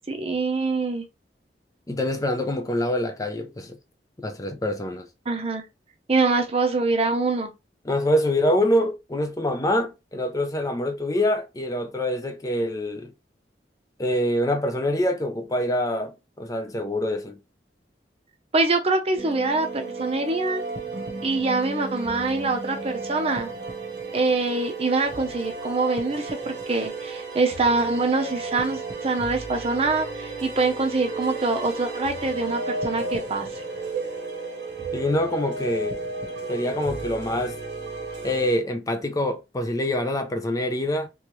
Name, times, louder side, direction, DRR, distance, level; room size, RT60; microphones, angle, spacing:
voice 1, 0.1-1.0 5.3-5.6 6.1-7.5 18.5-20.6 21.2-23.5 24.1-33.5, right 3 dB, 35° right, 0.7 m, -24 dB
voice 2, 1.9-3.8 4.2-5.1 7.9-13.1 14.0-17.4 34.9-36.0 36.5-37.6 38.2-41.1, left 1 dB, 20° left, 0.5 m, -25 dB
sound 1, 19.2-38.6, right 3 dB, 70° right, 0.9 m, -33 dB
3.1 x 3.1 x 3.0 m
head